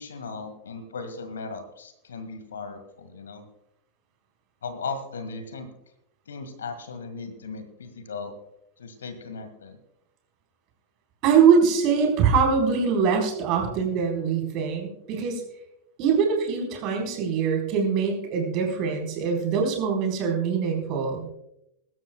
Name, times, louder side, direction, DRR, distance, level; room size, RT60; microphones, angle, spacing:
voice 1, 0.0-3.5 4.6-5.7 6.3-8.3 8.8-9.8, left 4 dB, 65° left, 9 dB, 1.8 m, -37 dB
voice 2, 11.2-15.4 16.0-21.3, right 6 dB, 40° right, 2 dB, 4.1 m, -23 dB
23.0 x 13.0 x 2.3 m, 0.82 s
figure-of-eight pair, 90°, 0 cm